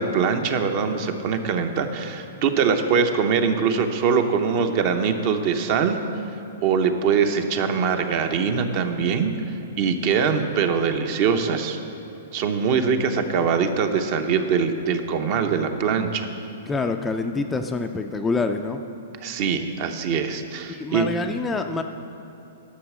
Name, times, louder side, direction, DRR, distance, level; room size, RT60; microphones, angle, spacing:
voice 1, 0.0-6.0 6.6-9.3 9.8-11.8 12.3-16.3 19.2-21.1, right 6 dB, 45° right, 7 dB, 0.9 m, -22 dB
voice 2, 16.7-18.8 20.7-21.8, left 3 dB, 10° left, 5 dB, 0.4 m, -26 dB
11.5 x 6.5 x 6.1 m, 3.0 s
hypercardioid pair, 145°, 0 cm